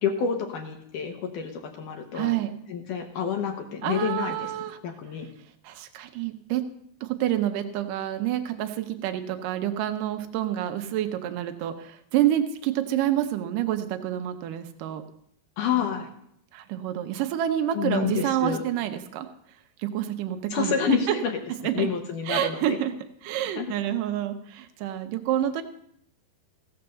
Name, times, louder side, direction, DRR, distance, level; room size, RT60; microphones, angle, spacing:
voice 1, 0.0-2.4 2.7-4.5 4.8-5.3 15.6-16.1 17.7-18.6 20.5-21.4 21.7-22.8 23.6-23.7, left 7 dB, 70° left, 4 dB, 2.2 m, -28 dB
voice 2, 2.1-2.5 3.8-4.8 5.6-6.6 7.0-15.0 16.5-19.3 19.8-21.2 21.6-21.9 22.3-22.9 23.2-25.6, right 12 dB, 85° right, 7 dB, 1.9 m, -28 dB
16.0 x 6.6 x 6.9 m, 0.69 s
omnidirectional pair, 4.9 m